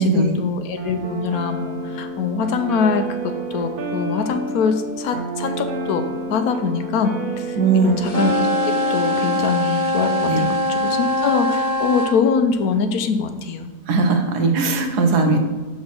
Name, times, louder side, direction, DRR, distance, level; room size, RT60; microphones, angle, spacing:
voice 1, 0.0-6.0 6.3-13.7, left 5 dB, 75° left, 8 dB, 1.1 m, -23 dB
sound 1, 0.8-9.5, right 2 dB, 65° right, 1.5 m, -29 dB
voice 2, 7.6-7.9 10.3-10.5 13.9-15.4, right 4 dB, 85° right, 5 dB, 1.5 m, -18 dB
sound 2, 8.0-12.2, left 1 dB, 45° left, 0.7 m, -22 dB
5.9 x 4.3 x 5.9 m, 1.2 s
omnidirectional pair, 1.6 m